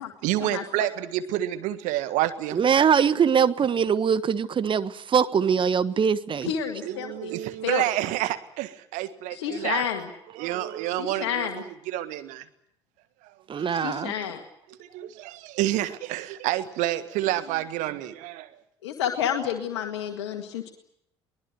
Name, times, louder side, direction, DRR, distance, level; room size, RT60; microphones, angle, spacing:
voice 1, 0.2-2.6 6.8-9.9 10.3-12.4 13.5-13.7 14.8-18.5, right 14 dB, 60° right, 1.7 m, -29 dB
voice 2, 2.5-6.5 13.5-14.1, right 7 dB, 35° right, 1.3 m, -22 dB
voice 3, 6.4-7.3 7.6-7.8 9.3-10.1 11.0-11.5 13.7-14.4 18.8-20.7, left 9 dB, 70° left, 1.9 m, -29 dB
23.0 x 20.0 x 9.4 m
figure-of-eight pair, 60°, 14 cm